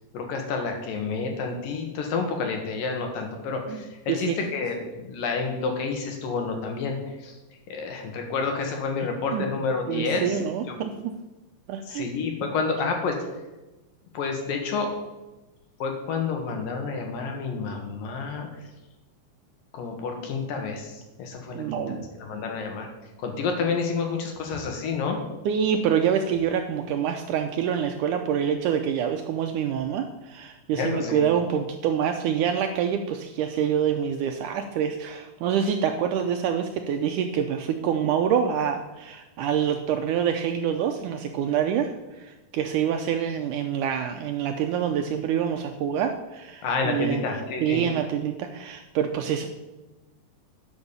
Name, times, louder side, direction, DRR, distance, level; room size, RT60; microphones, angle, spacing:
voice 1, 0.1-7.3 7.7-10.4 10.7-10.8 11.9-13.2 14.1-14.9 15.8-18.5 19.7-22.9 23.2-25.2 30.8-31.2 46.6-47.8, left 4 dB, 75° left, 3 dB, 3.2 m, -29 dB
voice 2, 4.1-4.4 9.3-9.5 9.9-11.1 11.7-12.1 21.6-22.1 25.5-47.2 47.6-49.5, right 8 dB, 80° right, 6 dB, 1.9 m, -26 dB
11.0 x 6.4 x 6.9 m, 1.1 s
omnidirectional pair, 4.2 m